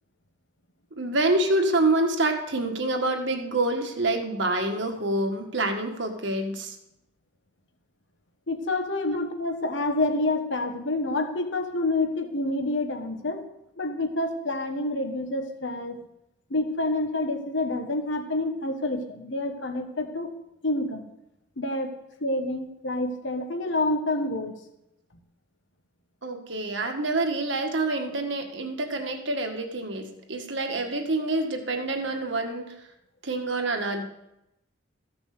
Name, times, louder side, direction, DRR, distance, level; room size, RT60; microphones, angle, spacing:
voice 1, 1.0-6.8 26.2-32.7 33.2-34.0, right 2 dB, 60° right, 3 dB, 1.6 m, -27 dB
voice 2, 8.5-13.5 13.8-16.0 16.5-20.3 20.6-21.1 21.6-21.9 22.2-24.5, left 2 dB, 65° left, 6 dB, 1.2 m, -28 dB
14.5 x 6.3 x 6.6 m, 0.87 s
head